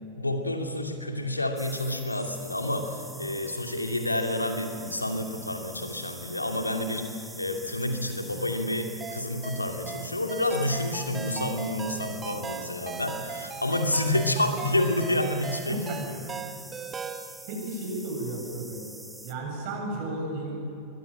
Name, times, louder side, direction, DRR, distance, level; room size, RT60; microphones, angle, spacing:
voice 1, 0.2-16.0, left 1 dB, 85° left, 4 dB, 2.4 m, -29 dB
sound 1, 1.6-19.3, right 1 dB, 5° right, 1.5 m, -46 dB
sound 2, 9.0-17.3, right 6 dB, 20° right, 1.4 m, -38 dB
voice 2, 15.7-16.2 17.5-18.9 19.2-20.6, right 2 dB, 45° right, 1 dB, 7.4 m, -33 dB
23.5 x 20.5 x 8.8 m, 2.8 s
figure-of-eight pair, 90°, 0 cm